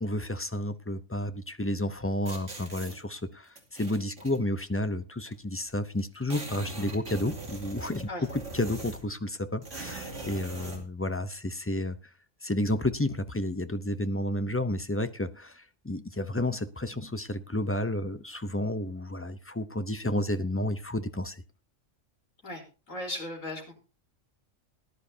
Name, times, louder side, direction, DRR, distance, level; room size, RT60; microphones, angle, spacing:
voice 1, 0.0-12.0 12.4-21.4, left 1 dB, 20° left, 11 dB, 0.4 m, -31 dB
sound 1, 2.3-3.0 3.6-4.4 5.3-5.4 5.7-5.8 6.0-9.1 9.6-10.8, right 2 dB, 65° right, 3.2 m, -41 dB
voice 2, 22.4-23.7, left 1 dB, 90° left, 0 dB, 4.5 m, -37 dB
19.0 x 11.0 x 2.8 m, 0.33 s
omnidirectional pair, 1.3 m